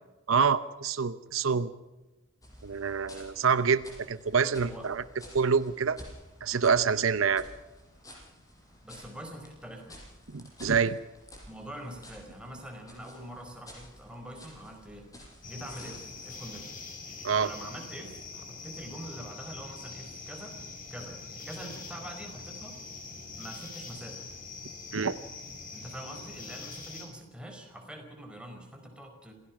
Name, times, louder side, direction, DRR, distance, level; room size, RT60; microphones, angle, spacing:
voice 1, 0.3-1.7 2.6-5.0 5.3-6.0 6.4-7.4 10.3-11.0 17.2-17.5 24.9-25.2, right 6 dB, 70° right, 13 dB, 0.8 m, -26 dB
sound 1, 2.4-16.5, equal, 15° left, 6.3 m, -52 dB
voice 2, 8.8-10.0 11.5-15.1 15.5-16.8 17.4-20.6 20.9-22.8 23.4-24.3 25.7-29.3, right 1 dB, 5° right, 3 dB, 4.7 m, -44 dB
sound 2, 15.4-27.1, left 4 dB, 40° left, 5.5 m, -44 dB
27.0 x 17.0 x 6.0 m, 1.1 s
head